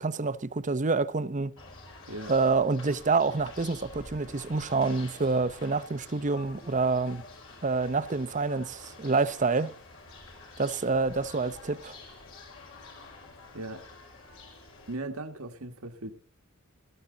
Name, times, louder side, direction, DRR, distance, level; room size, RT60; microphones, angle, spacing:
voice 1, 0.0-1.5 2.3-7.2 7.6-9.7 10.6-12.0, right 4 dB, 35° right, 0.7 m, -27 dB
sound 1, 1.6-14.9, left 3 dB, 65° left, 5.3 m, -48 dB
voice 2, 14.9-16.1, right 2 dB, 75° right, 1.5 m, -38 dB
19.0 x 13.5 x 3.9 m
head